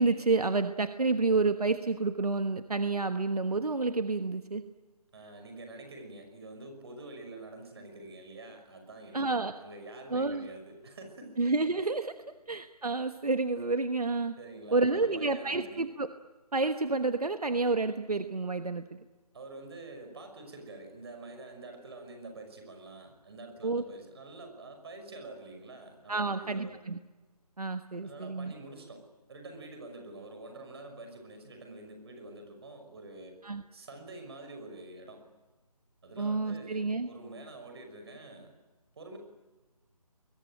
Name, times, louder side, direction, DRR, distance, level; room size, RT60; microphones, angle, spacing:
voice 1, 0.0-4.6 9.1-9.5 10.1-10.5 11.4-12.1 12.5-14.3 14.7-16.1 16.5-19.0 23.6-23.8 26.1-27.0 27.6-28.5 33.4-33.6 36.2-37.1, right 3 dB, 75° right, 9 dB, 1.3 m, -29 dB
voice 2, 5.1-11.6 14.4-15.8 19.3-26.8 28.0-33.4 33.7-35.2 36.0-38.5 38.9-39.2, right 2 dB, 40° right, 5 dB, 5.9 m, -47 dB
27.0 x 22.0 x 9.1 m, 1.2 s
figure-of-eight pair, 155°, 20 cm